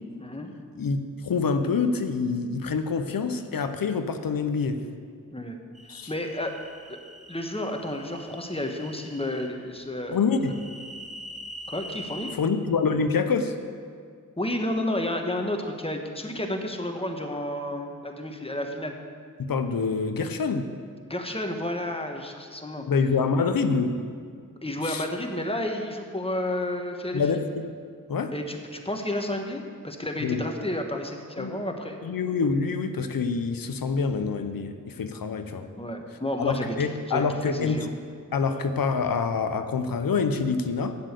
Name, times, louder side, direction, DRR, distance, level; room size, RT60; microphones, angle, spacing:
voice 1, 0.2-0.5 5.3-5.6 5.9-6.5 6.9-7.0 7.3-10.2 11.7-12.3 14.4-18.9 21.1-22.9 24.6-27.2 28.3-32.0 35.8-37.9, left 1 dB, 15° left, 3 dB, 1.3 m, -31 dB
voice 2, 1.2-4.8 5.9-6.1 10.1-10.6 12.3-13.5 19.4-20.7 22.9-24.1 24.8-25.0 27.1-27.8 28.1-28.3 30.2-30.4 31.4-31.6 32.0-35.7 36.4-37.9 38.3-41.0, left 5 dB, 85° left, 8 dB, 0.7 m, -26 dB
sound 1, 5.7-9.5 10.4-12.3, equal, 20° right, 1.3 m, -43 dB
7.6 x 7.2 x 8.1 m, 2.1 s
cardioid pair, 40°, 34 cm